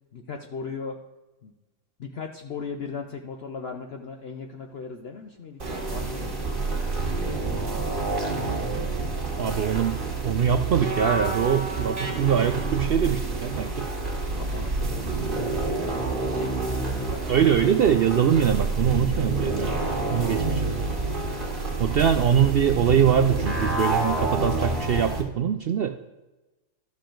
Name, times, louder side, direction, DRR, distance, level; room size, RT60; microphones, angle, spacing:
voice 1, 0.1-1.0 1.4-1.5 2.0-7.8 14.4-16.0 16.3-17.7 20.0-20.3 21.4-22.2, left 5 dB, 55° left, 4 dB, 0.8 m, -39 dB
sound 1, 5.6-25.2, right 3 dB, 35° right, 1.8 m, -28 dB
voice 2, 9.4-10.0 10.2-13.9 17.3-19.7 20.1-20.7 21.8-26.1, right 8 dB, 75° right, 7 dB, 0.5 m, -23 dB
12.5 x 6.6 x 3.8 m, 1.1 s
omnidirectional pair, 1.6 m